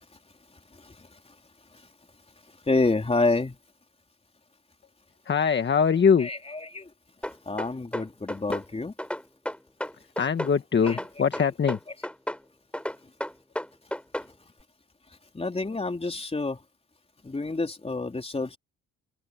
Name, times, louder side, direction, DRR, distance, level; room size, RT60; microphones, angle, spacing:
voice 1, 2.7-3.6 6.2-6.8 7.5-8.9 10.8-11.0 11.4-11.5 15.3-16.6 17.2-18.6, left 3 dB, 20° left, 3.8 m, -28 dB
voice 2, 5.3-6.3 10.2-11.8, left 6 dB, 35° left, 1.4 m, -22 dB
sound 1, 7.2-8.7 9.0-10.6 10.9-12.4 12.7-14.3, equal, 5° left, 5.6 m, -33 dB
open air
cardioid pair, 90°, 30 cm